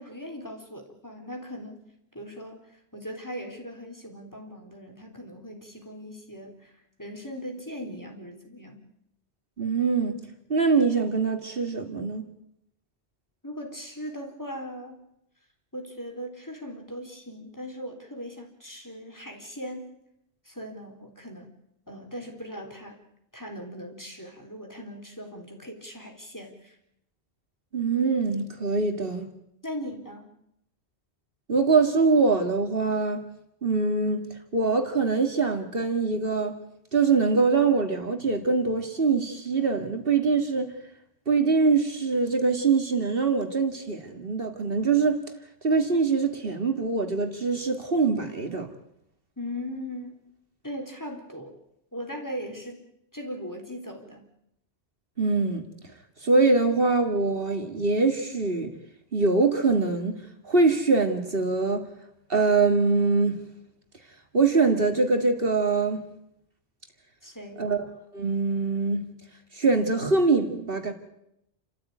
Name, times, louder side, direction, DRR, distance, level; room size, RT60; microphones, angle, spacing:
voice 1, 0.0-1.8 2.1-8.8 13.4-15.1 15.7-20.0 20.4-21.5 21.9-23.0 23.3-26.8 29.6-30.3 49.4-50.3 50.6-51.6 51.9-52.9 53.1-54.2 67.2-67.7, equal, 15° left, 3.7 m, -39 dB
voice 2, 9.6-10.2 10.5-12.2 27.7-29.3 31.5-33.2 33.6-34.2 34.5-36.5 36.9-40.7 41.3-45.2 45.6-48.7 55.2-55.6 56.2-58.7 59.1-60.2 60.4-61.8 62.3-63.5 64.3-66.0 67.6-67.8 68.1-69.1 69.5-70.9, right 4 dB, 60° right, 2.5 m, -23 dB
29.5 x 14.0 x 9.4 m
omnidirectional pair, 1.1 m